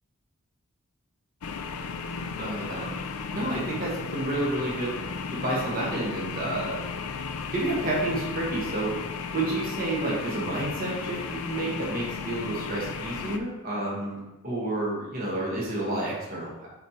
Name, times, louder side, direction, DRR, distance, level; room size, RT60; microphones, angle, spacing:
sound 1, 1.4-13.4, left 5 dB, 80° left, 0.5 m, -35 dB
voice 1, 2.3-3.0 3.3-4.9 5.3-6.9 7.5-8.9 9.3-16.7, right 1 dB, 40° right, -5 dB, 1.5 m, -30 dB
8.6 x 4.3 x 2.9 m, 1.0 s
head